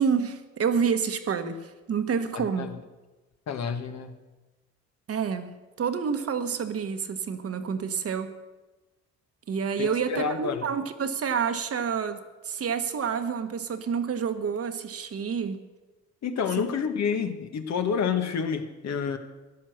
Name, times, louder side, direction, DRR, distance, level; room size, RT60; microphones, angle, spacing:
voice 1, 0.0-2.7 5.1-8.3 9.5-15.6, right 6 dB, 50° right, 9 dB, 1.2 m, -28 dB
voice 2, 2.3-2.8 3.5-4.1 9.8-10.7 16.2-19.2, left 6 dB, 65° left, 7 dB, 1.5 m, -29 dB
14.0 x 11.0 x 6.4 m, 1.2 s
cardioid pair, 90°, 30 cm